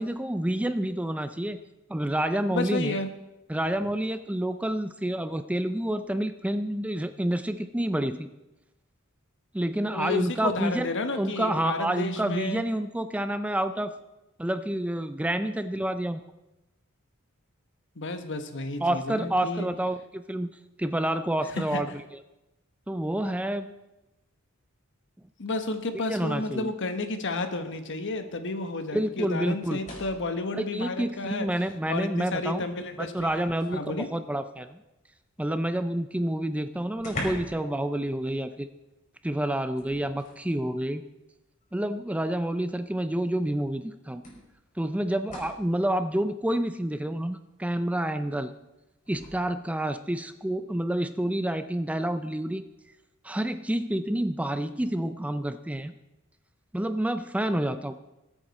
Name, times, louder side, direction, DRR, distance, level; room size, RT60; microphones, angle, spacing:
voice 1, 0.0-1.6 1.9-3.0 3.5-8.3 9.5-10.9 11.2-13.9 14.4-16.2 18.8-20.5 20.8-21.9 22.9-23.7 26.1-26.7 28.9-29.8 30.5-32.6 33.0-34.8 35.4-38.7 39.2-41.0 41.7-44.2 44.8-48.5 49.1-52.6 53.2-55.9 56.7-58.0, right 1 dB, 5° right, 10 dB, 0.4 m, -28 dB
voice 2, 2.5-3.1 9.9-12.6 18.0-19.7 21.5-21.8 25.4-31.5 31.9-34.1, left 2 dB, 60° left, 8 dB, 1.3 m, -32 dB
sound 1, 29.6-30.4 31.7-31.8 32.3-33.9 36.0-36.1 36.3-36.4 37.0-37.7 38.0-38.2 39.7-40.5 41.6-41.7 43.3-43.4 44.2-45.7 49.0-49.3, left 1 dB, 35° left, 5.5 m, -41 dB
21.0 x 8.8 x 4.2 m, 0.97 s
head